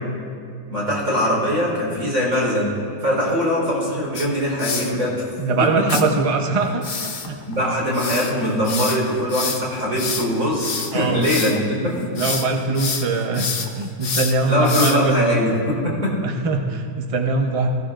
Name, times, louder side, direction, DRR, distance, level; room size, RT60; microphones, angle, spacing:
voice 1, 0.7-2.7 3.0-5.2 5.6-5.7 7.5-11.9 14.5-16.1, equal, 45° right, -4 dB, 4.7 m, -22 dB
sound 1, 4.1-4.9 5.9-6.0 6.8-11.6 12.0-12.5 12.7-15.2, left 5 dB, 45° left, 1.0 m, -27 dB
voice 2, 5.4-7.4 10.9-11.2 11.6-11.7 12.1-15.3 16.2-17.7, right 3 dB, 65° right, 3 dB, 0.3 m, -22 dB
21.0 x 15.5 x 2.6 m, 2.3 s
omnidirectional pair, 2.1 m